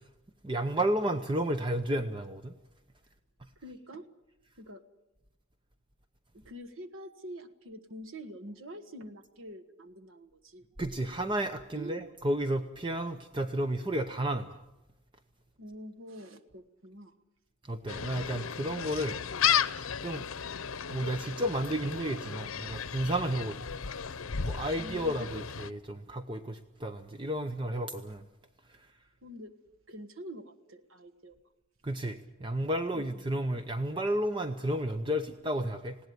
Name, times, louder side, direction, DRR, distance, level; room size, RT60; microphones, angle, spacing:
voice 1, 0.4-2.5 10.8-14.6 17.6-19.2 19.6-19.7 20.0-20.2 20.9-23.6 24.4-28.2 28.7-28.9 31.8-36.0, right 1 dB, 25° right, 9 dB, 0.8 m, -32 dB
voice 2, 3.5-4.1 4.6-4.8 6.3-10.6 11.7-12.1 15.6-17.2 23.4-23.5 24.8-25.3 29.2-29.5 29.9-31.4, right 1 dB, 70° right, 7 dB, 1.5 m, -46 dB
Gull seagull, 17.9-25.7, left 8 dB, 80° left, 0.8 m, -34 dB
20.0 x 17.0 x 9.3 m, 0.97 s
head